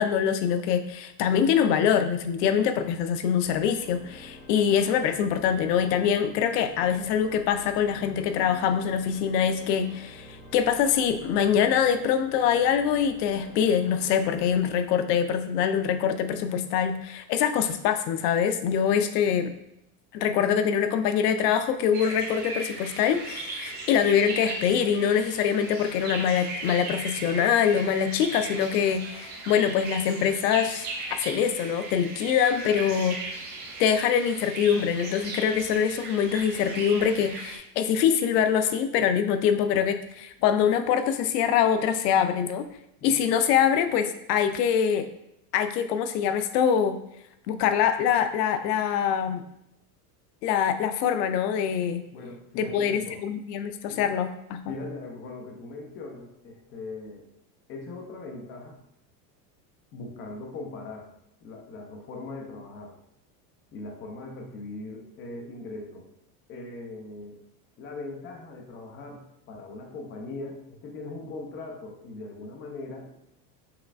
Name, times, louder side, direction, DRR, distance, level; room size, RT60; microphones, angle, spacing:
voice 1, 0.0-19.5 20.1-33.2 33.8-42.6 43.0-45.1 45.5-47.0 47.5-49.4 50.4-52.0 52.6-54.7, left 8 dB, 85° left, 9 dB, 0.6 m, -24 dB
Organ, 3.5-15.3, left 1 dB, 55° left, 1.5 m, -48 dB
sound 1, 21.9-37.6, right 3 dB, 20° right, 0.5 m, -37 dB
voice 2, 52.1-53.2 53.9-54.0 54.7-57.3 57.7-58.8 59.9-61.1 61.4-62.9 63.7-66.1 66.5-67.4 67.8-73.1, left 3 dB, 25° left, 1 dB, 0.6 m, -40 dB
5.7 x 3.1 x 2.5 m, 0.80 s
supercardioid pair, 165°, 47 cm